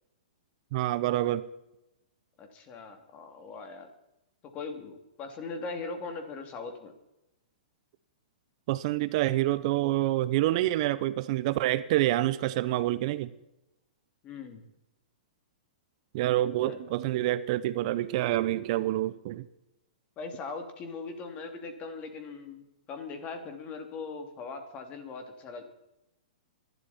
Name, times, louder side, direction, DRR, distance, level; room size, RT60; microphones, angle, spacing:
voice 1, 0.7-1.5 8.7-13.3 16.1-19.4, right 15 dB, 50° right, 15 dB, 0.8 m, -27 dB
voice 2, 2.4-3.9 4.5-6.9 14.2-14.6 16.6-16.8 20.2-25.7, left 4 dB, 30° left, 6 dB, 3.0 m, -40 dB
24.0 x 12.0 x 4.4 m, 0.92 s
hypercardioid pair, 130°, 5 cm